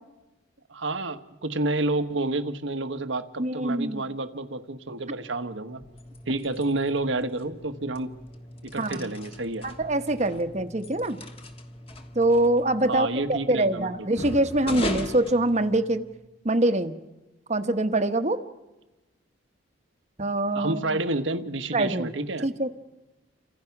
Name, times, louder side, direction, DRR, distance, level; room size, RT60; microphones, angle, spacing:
voice 1, 0.7-5.8 6.3-8.1 8.6-9.7 12.9-13.9 20.5-22.4, right 2 dB, 75° right, 9 dB, 1.4 m, -29 dB
voice 2, 3.4-4.0 8.8-9.1 9.6-11.2 12.1-16.0 16.4-17.0 17.5-18.4 20.2-21.0 21.7-22.1 22.4-22.7, right 1 dB, 35° right, 9 dB, 1.2 m, -24 dB
sound 1, 5.7-16.2, left 1 dB, 30° left, 1.6 m, -40 dB
29.0 x 25.5 x 6.0 m, 1.1 s
head